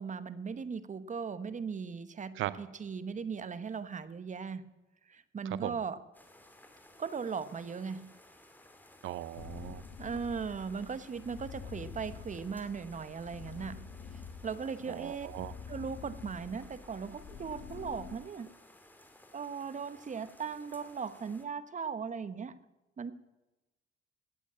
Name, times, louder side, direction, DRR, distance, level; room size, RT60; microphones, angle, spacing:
voice 1, 0.0-4.7 5.1-6.0 7.0-8.2 10.0-13.9 14.4-15.3 15.7-18.5 19.3-22.6 23.0-23.1, right 6 dB, 40° right, 14 dB, 1.1 m, -38 dB
voice 2, 5.4-5.8 9.0-9.8 14.9-15.5, right 14 dB, 80° right, 15 dB, 0.6 m, -38 dB
sound 1, 6.1-21.4, left 1 dB, 10° left, 2.6 m, -58 dB
sound 2, 9.3-18.2, left 6 dB, 65° left, 1.8 m, -47 dB
17.0 x 8.3 x 8.8 m, 1.0 s
cardioid pair, 90°, 20 cm